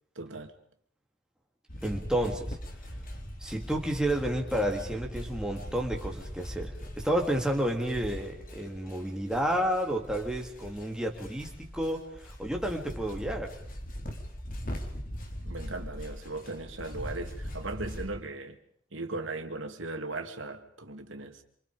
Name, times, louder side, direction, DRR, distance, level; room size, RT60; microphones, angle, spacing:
voice 1, 0.2-0.5 15.4-18.6 18.9-21.4, right 2 dB, 85° right, 6 dB, 2.7 m, -38 dB
sound 1, 1.7-18.1, equal, 45° left, 4.0 m, -41 dB
voice 2, 1.8-2.6 3.4-13.5, right 1 dB, 5° right, 1 dB, 3.4 m, -31 dB
27.0 x 26.5 x 5.2 m, 0.64 s
head